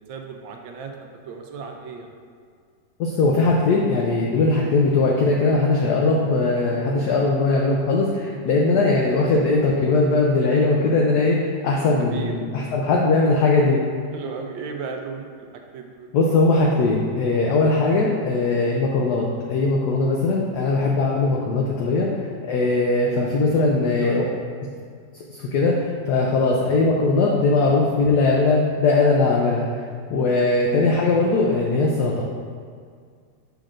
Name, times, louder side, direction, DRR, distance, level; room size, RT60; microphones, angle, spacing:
voice 1, 0.1-0.9 1.3-2.1 12.0-12.3 14.1-15.3 15.5-16.1 23.4-24.3 26.1-26.2, right 5 dB, 80° right, 3 dB, 1.4 m, -36 dB
voice 2, 3.0-13.8 16.1-24.2 25.3-29.7 30.1-32.2, left 3 dB, 70° left, -2 dB, 1.1 m, -20 dB
6.5 x 6.1 x 2.5 m, 2.1 s
omnidirectional pair, 2.1 m